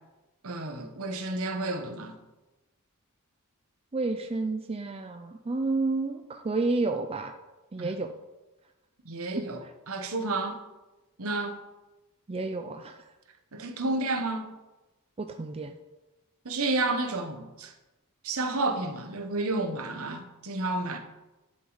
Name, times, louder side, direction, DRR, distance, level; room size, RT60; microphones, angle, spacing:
voice 1, 0.4-2.2 7.8-7.9 9.0-10.6 11.2-11.6 13.5-14.5 16.4-17.7 18.2-21.0, right 2 dB, 65° right, 1.1 m, -31 dB
voice 2, 3.9-7.3 7.7-8.1 12.3-13.0 15.2-15.7, right 3 dB, 25° right, 0.4 m, -30 dB
11.0 x 6.5 x 4.0 m
head